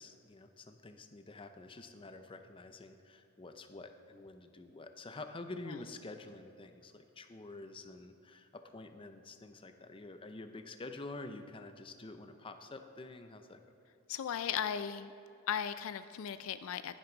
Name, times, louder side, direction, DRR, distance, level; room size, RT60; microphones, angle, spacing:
voice 1, 0.0-13.6, left 2 dB, 25° left, 7 dB, 0.6 m, -48 dB
voice 2, 14.1-15.1 15.5-17.0, left 8 dB, 70° left, 12 dB, 0.4 m, -36 dB
11.0 x 10.5 x 3.9 m, 2.8 s
head